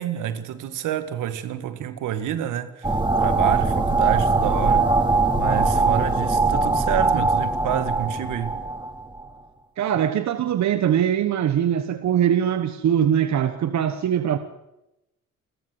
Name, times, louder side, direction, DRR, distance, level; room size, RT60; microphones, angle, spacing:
voice 1, 0.0-2.9 3.2-4.9 5.4-8.6, right 10 dB, 85° right, 1.8 m, -28 dB
sound 1, 2.8-9.2, right 3 dB, 15° right, 2.9 m, -21 dB
voice 2, 9.8-14.4, right 9 dB, 65° right, 1.2 m, -22 dB
28.5 x 13.5 x 7.8 m
cardioid pair, 90°, 30 cm